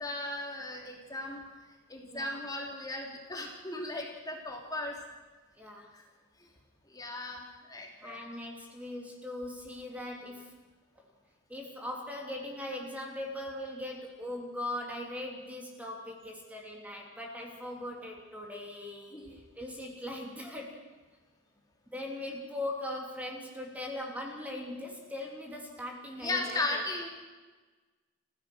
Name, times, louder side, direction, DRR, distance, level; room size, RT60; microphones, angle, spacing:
voice 1, 0.0-1.4 1.9-5.0 5.9-6.0 6.9-8.2 19.1-19.4 26.2-27.1, left 2 dB, 20° left, 0 dB, 3.3 m, -36 dB
voice 2, 2.1-2.4 5.5-5.9 8.0-10.5 10.9-11.0 11.5-20.9 21.9-26.8, left 1 dB, 10° right, 0 dB, 3.2 m, -40 dB
30.0 x 16.0 x 6.4 m, 1.3 s
head